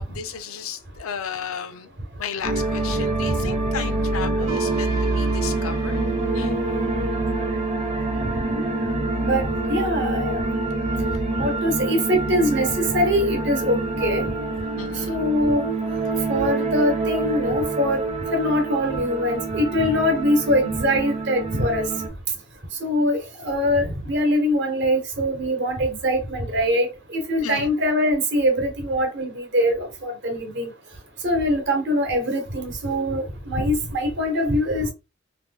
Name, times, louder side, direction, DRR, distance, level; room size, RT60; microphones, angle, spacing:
voice 1, 0.0-1.9 2.2-6.0 6.3-6.6 14.8-15.2 27.4-27.7, left 7 dB, 85° left, 0.5 m, -34 dB
sound 1, 2.4-22.1, right 2 dB, 30° right, 0.8 m, -26 dB
voice 2, 9.2-10.4 11.4-14.3 15.1-15.7 16.3-18.0 18.3-21.9 22.8-26.9 27.1-30.7 31.2-34.9, equal, 55° right, 1.0 m, -23 dB
2.9 x 2.2 x 3.5 m
head